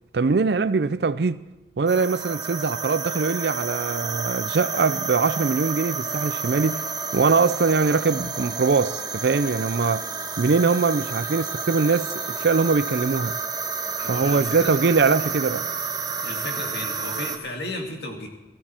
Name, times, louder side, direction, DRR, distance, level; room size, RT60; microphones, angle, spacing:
voice 1, 0.1-1.4 1.8-6.9 7.1-10.0 10.4-13.4 14.1-15.7, right 4 dB, 65° right, 0.5 m, -22 dB
sound 1, 1.9-17.4, right 5 dB, 20° right, 1.0 m, -30 dB
voice 2, 14.0-14.7 16.2-18.3, left 1 dB, 65° left, 2.3 m, -34 dB
16.5 x 14.5 x 4.4 m
head